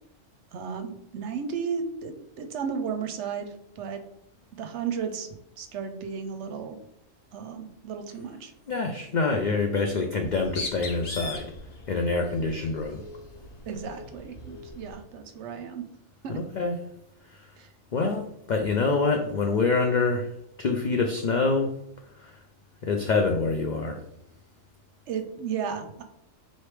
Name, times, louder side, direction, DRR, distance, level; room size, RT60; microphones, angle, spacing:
voice 1, 0.5-4.0 4.5-6.8 7.3-8.5 13.7-15.9 16.2-16.4 17.6-17.7 25.1-26.0, right 6 dB, 70° right, 7 dB, 0.8 m, -34 dB
voice 2, 8.7-11.5 11.9-13.0 16.3-16.7 17.9-20.3 20.6-21.7 22.2-22.3 22.8-24.0, left 4 dB, 85° left, 3 dB, 0.4 m, -26 dB
Bird, 10.2-15.0, left 2 dB, 40° left, 0.6 m, -40 dB
4.2 x 3.2 x 3.2 m, 0.77 s
omnidirectional pair, 1.3 m